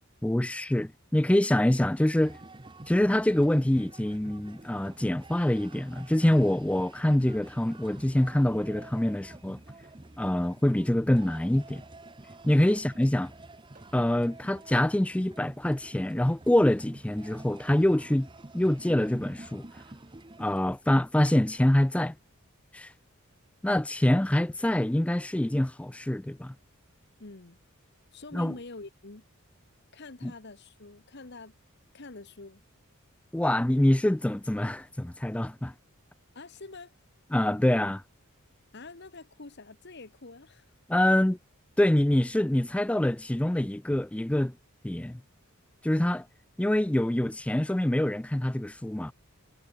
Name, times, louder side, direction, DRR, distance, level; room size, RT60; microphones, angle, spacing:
voice 1, 0.2-2.4 2.9-9.6 10.2-11.8 12.5-13.3 13.9-18.3 18.5-19.7 20.4-22.1 22.7-22.9 23.6-26.5 28.3-28.5 30.2-30.3 33.3-35.7 37.3-38.0 40.9-41.4 41.8-44.5 44.8-45.2 45.8-46.2 46.6-49.1, left 1 dB, 5° left, 0.3 m, -25 dB
sound 1, 2.2-20.6, right 2 dB, 20° right, 1.0 m, -49 dB
sound 2, 9.8-10.1 10.4-10.5 11.7-12.1 13.7-14.1, right 2 dB, 40° right, 6.7 m, -62 dB
voice 2, 27.2-27.6 28.1-29.2 29.9-31.5 31.9-32.6 36.3-36.9 38.7-40.7, left 3 dB, 50° left, 1.3 m, -46 dB
head